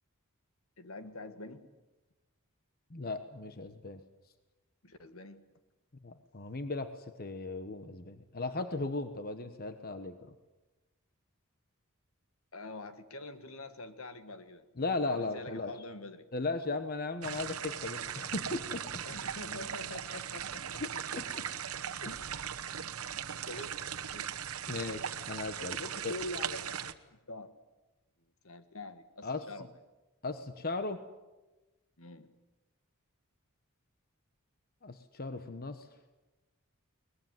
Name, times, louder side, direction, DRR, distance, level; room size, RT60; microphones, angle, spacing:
voice 1, 0.8-1.7 4.8-5.5 12.5-14.7 15.1-16.3 19.1-20.8 22.0-22.2 23.5-24.3 24.7-24.8 25.8-27.5 28.4-29.7 32.0-32.3, left 2 dB, 70° left, 10 dB, 1.7 m, -45 dB
voice 2, 2.9-4.0 6.0-10.3 14.8-15.7 16.3-19.0 20.8-21.4 22.0-22.2 24.7-26.1 29.2-29.4 30.2-31.0 34.8-35.9, left 3 dB, 45° left, 9 dB, 1.1 m, -37 dB
sound 1, 17.2-26.9, right 8 dB, 80° right, 1.1 m, -39 dB
22.5 x 20.5 x 9.5 m, 1.1 s
head